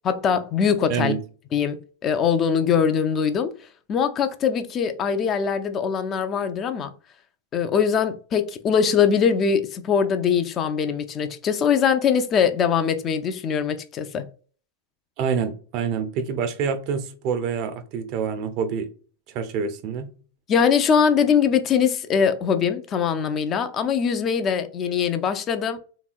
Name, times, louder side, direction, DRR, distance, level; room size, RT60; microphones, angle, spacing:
voice 1, 0.0-1.1 1.5-3.5 3.9-6.9 7.5-14.3 20.5-25.8, left 7 dB, 30° left, 0.4 m, -22 dB
voice 2, 0.9-1.2 15.2-18.9 19.3-20.1, right 6 dB, 40° right, 0.5 m, -26 dB
3.4 x 2.9 x 2.4 m
figure-of-eight pair, 90°, 0 cm